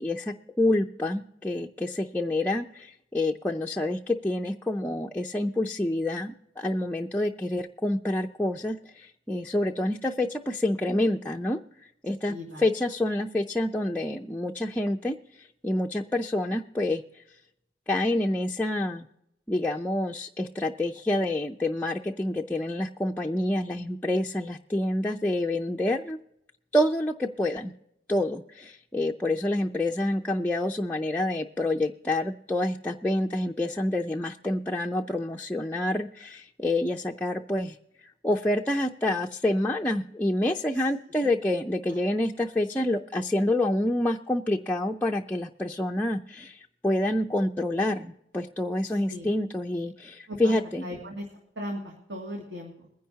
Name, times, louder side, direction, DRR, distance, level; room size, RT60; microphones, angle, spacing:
voice 1, 0.0-11.6 12.0-17.0 17.9-19.1 19.5-26.2 26.7-27.7 28.1-37.8 38.2-50.9, left 1 dB, 10° left, -1 dB, 0.5 m, -27 dB
voice 2, 12.3-12.6 40.8-40.9 41.2-41.3 41.9-42.0 48.8-49.3 50.3-50.5 50.8-51.3 51.6-52.9, equal, 75° right, -1 dB, 2.3 m, -38 dB
22.5 x 10.5 x 2.8 m, 0.82 s
head